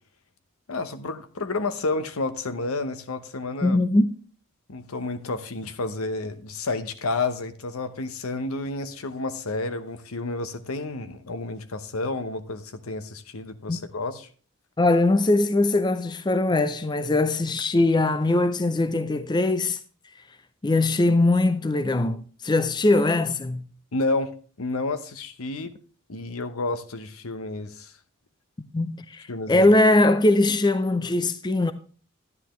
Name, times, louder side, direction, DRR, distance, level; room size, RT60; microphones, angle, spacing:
voice 1, 0.7-3.8 4.7-14.3 23.9-25.7 26.1-27.9 29.3-29.7, left 3 dB, 80° left, 0.9 m, -30 dB
voice 2, 3.6-4.1 13.7-13.8 14.8-19.8 20.6-23.6 28.7-31.7, left 2 dB, 20° left, 0.4 m, -21 dB
11.0 x 10.0 x 3.1 m
head